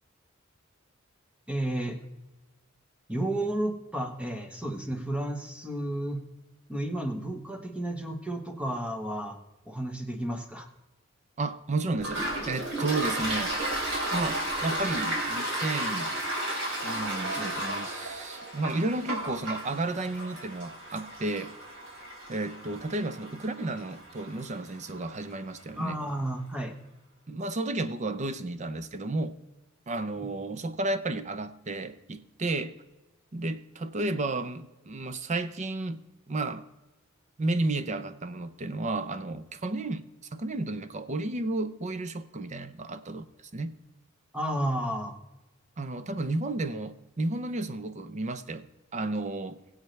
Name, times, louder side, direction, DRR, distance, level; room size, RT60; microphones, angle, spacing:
voice 1, 1.5-2.0 3.1-6.2 6.7-9.4 9.7-10.7 25.8-26.7 30.2-30.3 44.3-45.2, right 1 dB, 5° right, 1.2 m, -32 dB
voice 2, 11.4-13.6 14.1-16.1 16.8-21.5 22.3-26.0 27.3-29.4 29.9-32.8 33.3-36.0 36.3-36.7 37.4-40.0 40.3-43.3 43.5-43.7 45.8-48.7 48.9-49.6, right 2 dB, 35° right, 0.6 m, -32 dB
Toilet flush, 11.9-25.3, right 1 dB, 60° right, 3.4 m, -33 dB
20.5 x 8.0 x 3.3 m
head